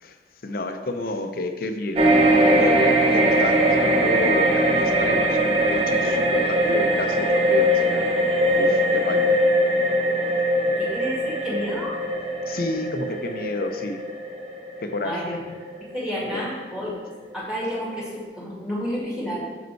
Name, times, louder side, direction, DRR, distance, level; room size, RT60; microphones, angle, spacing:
voice 1, 0.4-8.1 8.6-9.4 12.5-14.0 14.8-15.2 16.3-16.5, left 2 dB, 55° left, 6 dB, 0.6 m, -30 dB
sound 1, 2.0-16.6 16.9-17.1, right 1 dB, 35° right, 0.8 m, -21 dB
voice 2, 10.8-11.9 15.0-15.4 15.9-16.9 17.3-19.5, equal, 5° right, -6 dB, 1.9 m, -30 dB
6.6 x 5.1 x 4.5 m, 1.5 s
head